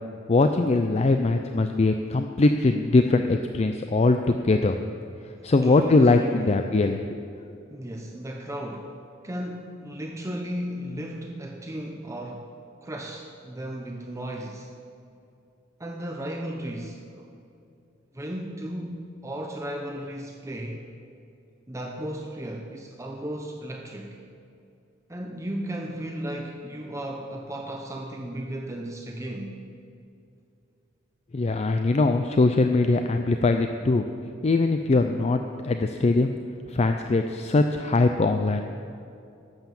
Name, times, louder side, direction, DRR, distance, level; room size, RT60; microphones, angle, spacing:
voice 1, 0.3-4.8 5.4-7.0 31.3-34.0 34.4-36.3 36.7-38.6, left 3 dB, 35° left, 6 dB, 0.4 m, -21 dB
voice 2, 5.4-6.7 7.7-8.9 9.2-12.5 12.8-14.7 15.8-17.3 18.1-20.8 21.7-24.2 25.1-29.6, right 1 dB, 15° right, 1 dB, 0.7 m, -35 dB
11.5 x 7.9 x 7.1 m, 2.6 s
head